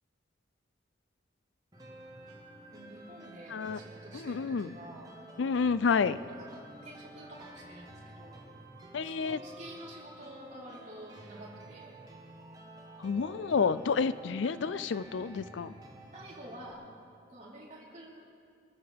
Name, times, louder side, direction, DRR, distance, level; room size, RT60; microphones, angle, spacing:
sound 1, 1.7-16.7, right 1 dB, 20° right, 1.3 m, -51 dB
voice 1, 2.7-5.1 6.0-8.4 9.0-12.0 13.6-13.8 15.2-15.6 16.1-16.9 17.3-18.2, right 1 dB, 40° right, -6 dB, 4.1 m, -49 dB
voice 2, 4.1-4.7 5.4-6.2 8.9-9.4 13.0-15.7, left 5 dB, 75° left, 15 dB, 0.4 m, -29 dB
27.5 x 14.5 x 3.6 m, 2.3 s
head